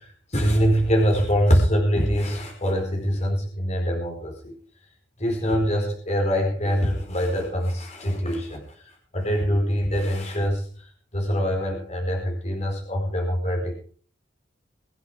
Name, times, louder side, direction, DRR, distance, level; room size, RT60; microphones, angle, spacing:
voice 1, 0.0-4.5 5.2-13.7, equal, 35° left, 1 dB, 4.7 m, -24 dB
24.0 x 8.2 x 5.0 m, 0.44 s
head